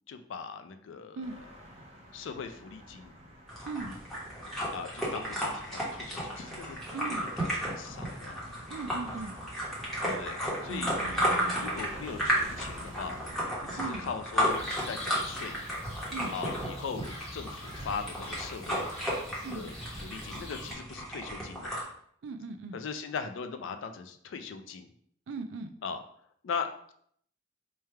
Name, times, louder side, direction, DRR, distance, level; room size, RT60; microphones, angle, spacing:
voice 1, 0.1-1.2 2.1-3.1 4.7-6.8 7.6-8.5 10.0-13.2 13.6-15.6 16.3-18.9 19.5-19.7 20.0-21.8 22.7-24.9 25.8-26.0 26.4-26.9, left 5 dB, 70° left, 8 dB, 0.4 m, -39 dB
sound 1, 1.2-15.7, equal, 35° right, 0.7 m, -48 dB
sound 2, 3.5-21.8, equal, ahead, 1.0 m, -34 dB
voice 2, 3.6-4.0 6.9-7.3 8.7-9.4 10.7-11.8 13.8-14.1 16.1-16.3 19.4-19.7 22.2-22.8 25.3-25.7, right 3 dB, 65° right, 8 dB, 0.3 m, -39 dB
sound 3, 14.5-20.7, left 1 dB, 30° left, 1.1 m, -44 dB
3.2 x 2.3 x 4.3 m, 0.65 s
head